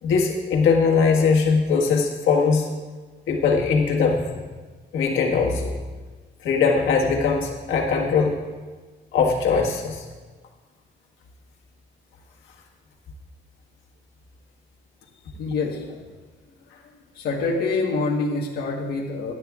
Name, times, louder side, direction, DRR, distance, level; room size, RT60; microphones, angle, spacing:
voice 1, 0.0-2.7 3.3-4.3 4.9-5.7 6.4-8.4 9.1-10.0, left 5 dB, 85° left, -1 dB, 1.6 m, -20 dB
voice 2, 15.4-15.9 17.2-19.3, left 3 dB, 55° left, -2 dB, 1.3 m, -25 dB
17.0 x 11.0 x 2.4 m, 1.4 s
cardioid pair, 180°, 20 cm